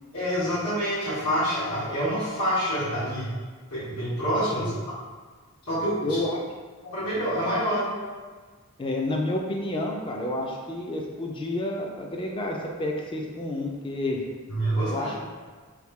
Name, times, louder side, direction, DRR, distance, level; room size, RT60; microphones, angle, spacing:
voice 1, 0.1-3.3 3.7-4.7 5.6-6.2 6.8-8.0 14.5-15.1, equal, 80° left, -11 dB, 1.3 m, -27 dB
voice 2, 6.0-6.4 8.8-14.3 14.9-15.3, left 1 dB, 20° left, 0 dB, 0.3 m, -30 dB
3.1 x 2.7 x 3.5 m, 1.4 s
head